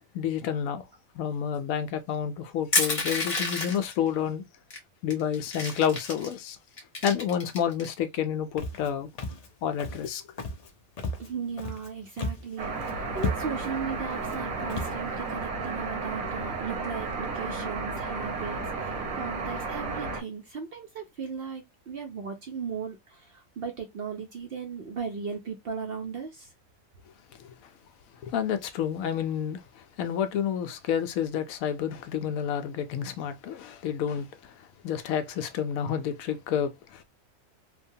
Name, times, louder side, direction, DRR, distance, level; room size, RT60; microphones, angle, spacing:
voice 1, 0.1-0.8 1.2-4.4 5.0-6.6 7.0-9.1 9.6-10.2 27.4-27.5 28.2-29.6 30.0-34.3 34.8-37.0, left 8 dB, 80° left, 1.0 m, -29 dB
Crushing, 2.7-3.9 4.7-4.8 5.1-6.3 6.8-7.9, left 2 dB, 35° left, 1.1 m, -28 dB
Walk footsteps, 8.6-8.9 9.2-9.5 9.8-10.1 10.4-10.7 11.0-11.9 12.2-12.5 12.8-12.9 13.2-13.7 14.2-14.4 14.7-15.0, left 2 dB, 60° left, 0.4 m, -33 dB
voice 2, 11.2-26.5, right 6 dB, 60° right, 0.6 m, -37 dB
sound 1, 12.6-20.2, right 4 dB, 85° right, 1.3 m, -33 dB
3.1 x 2.2 x 2.6 m
omnidirectional pair, 1.4 m